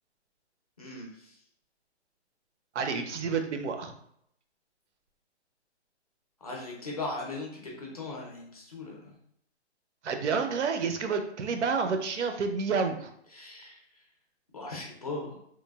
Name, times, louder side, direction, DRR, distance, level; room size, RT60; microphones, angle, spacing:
voice 1, 0.8-1.3 6.4-9.1 13.3-13.8 14.5-15.4, left 2 dB, 35° left, -1 dB, 0.5 m, -38 dB
voice 2, 2.7-3.9 10.0-13.1, right 5 dB, 80° right, 6 dB, 0.6 m, -29 dB
3.1 x 2.0 x 2.2 m, 0.70 s
hypercardioid pair, 175°, 35 cm